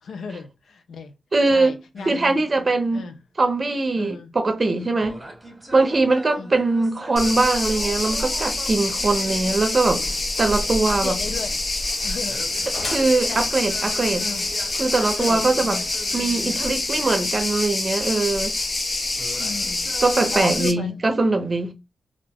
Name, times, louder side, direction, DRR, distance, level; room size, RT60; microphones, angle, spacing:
voice 1, 0.0-1.1 1.5-2.2 2.9-3.2 3.9-4.3 6.4-6.5 10.9-11.6 12.0-12.5 13.3-13.5 13.8-13.9 14.2-14.5 15.0-15.9 19.4-19.9 20.3-20.9, left 4 dB, 85° left, 0.5 m, -35 dB
voice 2, 1.3-1.8 2.1-3.0 3.4-5.2 5.7-11.2 12.8-14.3 14.8-15.8 16.1-18.6 20.0-21.7, right 3 dB, 40° right, 0.6 m, -21 dB
sound 1, 2.0-2.9 4.8-10.4 12.3-17.2 19.1-20.4, right 1 dB, 15° right, 1.1 m, -41 dB
sound 2, 7.2-20.7, left 2 dB, 45° left, 0.7 m, -26 dB
sound 3, 9.9-17.1, left 2 dB, 70° left, 1.5 m, -43 dB
2.5 x 2.1 x 3.4 m
cardioid pair, 70°, 0 cm